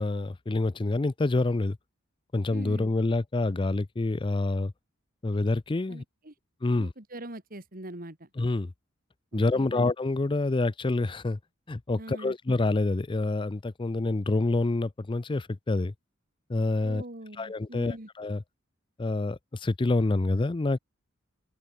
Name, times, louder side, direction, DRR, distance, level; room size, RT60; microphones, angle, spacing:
voice 1, 0.0-1.8 2.3-4.7 5.2-6.0 6.6-6.9 8.4-8.7 9.3-11.4 11.7-15.9 16.5-17.0 17.4-18.4 19.0-20.8, left 2 dB, 25° left, 0.5 m, -27 dB
voice 2, 2.5-2.9 5.9-6.3 6.8-8.3 9.3-9.9 12.0-12.3 16.8-18.1, right 1 dB, 45° right, 3.3 m, -42 dB
head